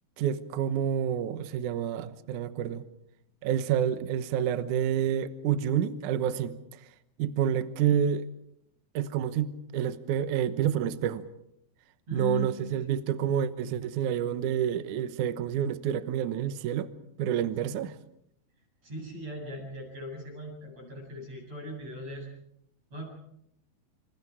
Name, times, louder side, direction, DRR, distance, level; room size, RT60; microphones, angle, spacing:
voice 1, 0.2-2.8 3.4-6.6 7.2-8.3 8.9-11.2 12.1-16.9 17.2-17.9, right 9 dB, 65° right, 2.1 m, -28 dB
voice 2, 12.1-12.9 17.6-17.8 18.8-22.3 22.9-23.1, left 1 dB, 40° right, 8.8 m, -39 dB
28.0 x 27.0 x 4.9 m
omnidirectional pair, 4.5 m